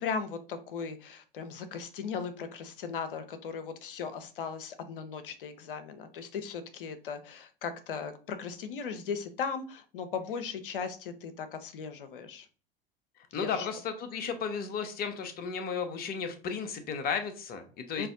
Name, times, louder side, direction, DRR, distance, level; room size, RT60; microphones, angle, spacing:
voice 1, 0.0-12.5 13.3-13.7 18.0-18.1, left 6 dB, 65° left, 10 dB, 0.7 m, -37 dB
voice 2, 13.3-18.1, left 6 dB, 30° left, 7 dB, 0.8 m, -34 dB
5.0 x 2.6 x 2.5 m, 0.39 s
figure-of-eight pair, 80°, 29 cm